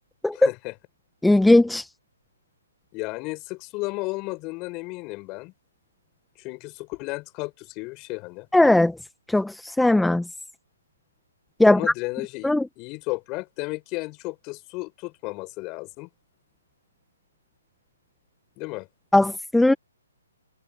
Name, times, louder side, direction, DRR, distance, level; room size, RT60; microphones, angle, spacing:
voice 1, 0.3-0.8 2.9-5.5 6.4-8.5 11.7-16.1 18.6-18.9, left 25 dB, 25° left, 7.0 m, -33 dB
voice 2, 1.2-1.9 8.5-8.9 9.3-10.2 11.6-11.8 12.4-12.6 19.1-19.7, left 2 dB, 5° left, 1.4 m, -18 dB
hypercardioid pair, 145°, 0 cm